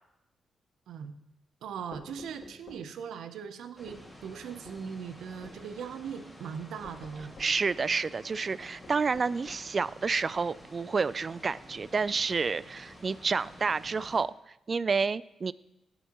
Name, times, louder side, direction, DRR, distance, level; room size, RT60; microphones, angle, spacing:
voice 1, 1.6-7.4, right 7 dB, 85° right, 10 dB, 0.7 m, -40 dB
sound 1, 1.9-2.9 3.9-4.1 4.7-4.8 5.4-5.6 6.8-7.6 8.8-9.7, left 2 dB, 55° left, 3.2 m, -50 dB
sound 2, 3.8-14.2, equal, ahead, 2.1 m, -51 dB
voice 2, 7.4-14.3 14.7-15.5, right 4 dB, 40° right, 19 dB, 0.3 m, -29 dB
16.5 x 8.0 x 3.0 m, 0.92 s
cardioid pair, 85°, 0 cm